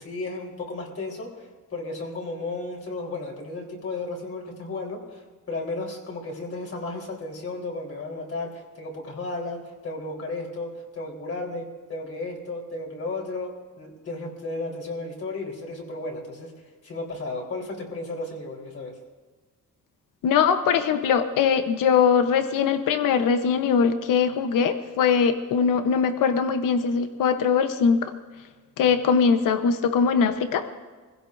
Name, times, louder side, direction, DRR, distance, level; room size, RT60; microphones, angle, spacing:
voice 1, 0.0-16.5 16.8-19.0, left 2 dB, 45° left, -1 dB, 4.1 m, -34 dB
voice 2, 20.2-28.1 28.8-30.6, left 6 dB, 85° left, 8 dB, 1.0 m, -21 dB
25.0 x 16.0 x 2.7 m, 1.4 s
cardioid pair, 125°, 32 cm